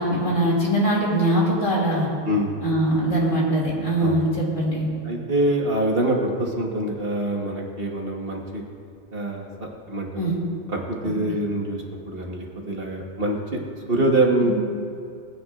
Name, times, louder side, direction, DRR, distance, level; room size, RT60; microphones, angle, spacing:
voice 1, 0.0-2.1 2.6-4.9 10.1-10.4 14.4-14.5, right 1 dB, 80° left, -4 dB, 2.7 m, -22 dB
voice 2, 5.0-8.6 9.1-9.5 9.9-10.1 10.7-13.6 13.9-14.5, right 1 dB, 50° right, 0 dB, 1.4 m, -24 dB
18.5 x 9.5 x 2.4 m, 2.5 s
omnidirectional pair, 1.3 m